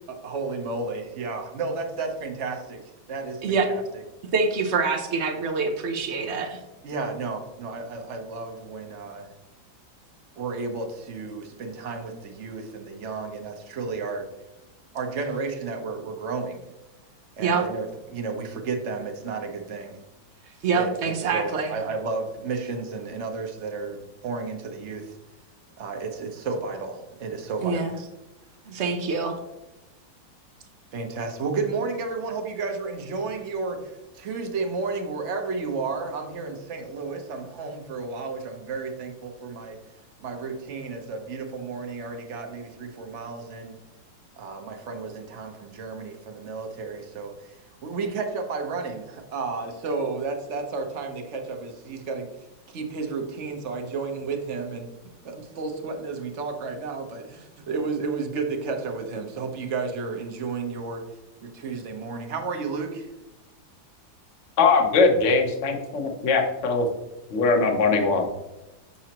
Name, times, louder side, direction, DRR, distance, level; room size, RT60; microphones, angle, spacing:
voice 1, 0.1-2.8 3.1-3.8 6.8-9.3 10.4-14.3 14.9-16.6 17.4-20.0 20.7-25.2 25.8-28.1 30.9-39.8 40.2-43.8 44.4-47.6 47.8-52.3 52.7-54.9 55.2-61.0 61.4-63.1, right 4 dB, 50° right, 3 dB, 1.0 m, -32 dB
voice 2, 4.3-6.6 17.4-17.6 20.4-21.8 27.6-27.9 28.7-29.4, right 4 dB, 85° right, 4 dB, 0.6 m, -25 dB
voice 3, 64.6-66.9 67.3-68.3, left 4 dB, 50° left, 2 dB, 1.0 m, -21 dB
7.0 x 6.2 x 2.9 m, 0.99 s
omnidirectional pair, 2.2 m